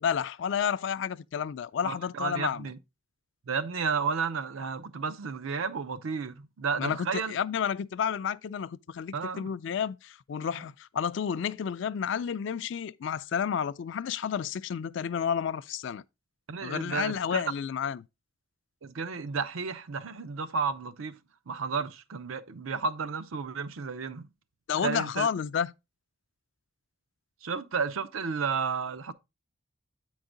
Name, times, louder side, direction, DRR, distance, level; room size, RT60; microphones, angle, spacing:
voice 1, 0.0-2.7 6.8-16.0 16.6-18.0 24.7-25.7, left 7 dB, 65° left, 0.3 m, -31 dB
voice 2, 1.8-2.8 3.5-7.4 9.1-9.5 10.6-10.7 16.5-17.4 18.8-21.2 21.5-24.2 24.8-25.3 27.4-29.1, right 5 dB, 85° right, 0.6 m, -32 dB
8.7 x 4.7 x 3.8 m
head